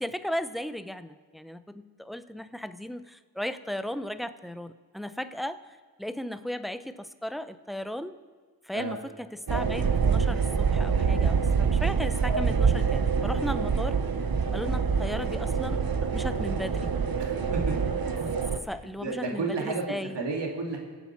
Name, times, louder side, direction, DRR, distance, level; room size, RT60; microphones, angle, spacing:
voice 1, 0.0-5.7 6.0-8.2 8.6-14.0 14.5-16.9 18.6-20.2, equal, ahead, 11 dB, 0.8 m, -36 dB
sound 1, 9.5-18.6, right 5 dB, 60° right, 1.1 m, -26 dB
voice 2, 17.2-17.7 19.0-20.8, right 3 dB, 90° right, 0 dB, 2.5 m, -32 dB
26.0 x 8.7 x 4.7 m, 1.5 s
cardioid pair, 45°, 41 cm